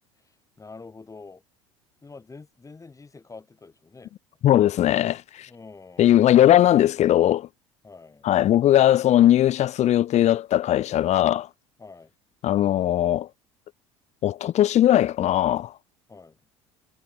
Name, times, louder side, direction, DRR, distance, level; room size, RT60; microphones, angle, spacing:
voice 1, 0.6-1.4 2.0-4.1 4.7-4.8 5.4-6.4 7.8-8.3 11.8-12.1 16.1-16.4, left 4 dB, 20° left, 6.0 m, -46 dB
voice 2, 4.4-5.5 6.0-7.5 8.2-11.5 12.4-13.3 14.2-15.7, left 12 dB, 45° left, 1.1 m, -19 dB
hypercardioid pair, 65°, 16 cm